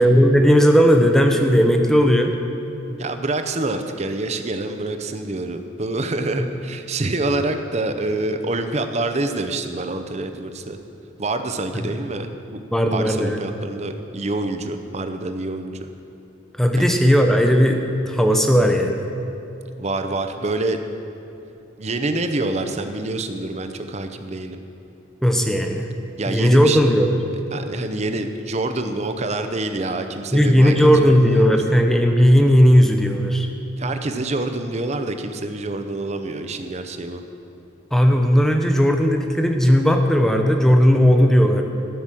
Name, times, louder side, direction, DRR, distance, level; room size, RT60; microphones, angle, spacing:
voice 1, 0.0-2.3 6.4-6.5 11.7-11.9 12.7-13.4 16.6-19.0 25.2-25.9 26.3-27.2 30.3-33.5 37.9-41.6, equal, ahead, 4 dB, 0.7 m, -16 dB
voice 2, 3.0-10.8 11.2-12.6 12.9-15.9 16.8-16.9 19.8-20.8 21.8-24.6 26.2-26.8 27.5-31.6 33.8-37.2, right 2 dB, 35° right, 7 dB, 0.6 m, -26 dB
13.5 x 6.0 x 7.5 m, 2.8 s
head